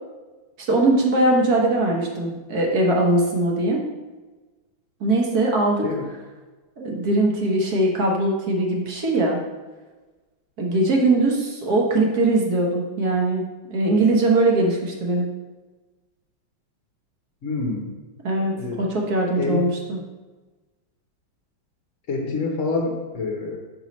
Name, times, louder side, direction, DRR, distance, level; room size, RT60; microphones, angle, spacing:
voice 1, 0.7-3.8 5.0-5.9 6.8-9.4 10.6-13.4 13.7-15.3 18.2-20.0, right 2 dB, 55° right, -1 dB, 1.4 m, -21 dB
voice 2, 17.4-17.9 18.4-18.8 19.4-19.6 22.1-23.6, left 3 dB, 55° left, -2 dB, 0.9 m, -27 dB
6.7 x 5.5 x 3.1 m, 1.3 s
omnidirectional pair, 2.1 m